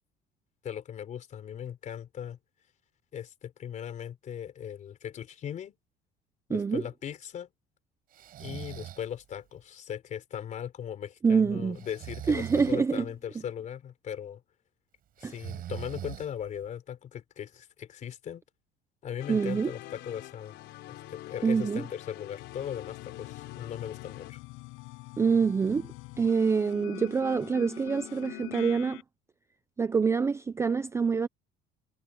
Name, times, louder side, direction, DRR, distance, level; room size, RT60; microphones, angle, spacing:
voice 1, 0.6-2.4 3.1-5.8 6.5-7.5 8.4-14.4 15.2-18.4 19.0-20.6 20.9-24.4, left 9 dB, 35° left, 3.7 m, -39 dB
voice 2, 6.5-6.8 11.2-11.8 12.3-13.0 15.2-15.3 19.3-19.7 21.4-21.9 25.2-29.0 29.8-31.3, right 5 dB, 15° right, 0.4 m, -26 dB
Breathing, 8.1-9.1 11.8-12.8 15.2-16.6, right 11 dB, 45° right, 6.3 m, -41 dB
sound 1, 19.2-24.3, left 15 dB, 60° left, 3.8 m, -45 dB
sound 2, 22.4-29.0, left 23 dB, 85° left, 5.7 m, -44 dB
cardioid pair, 165°, 21 cm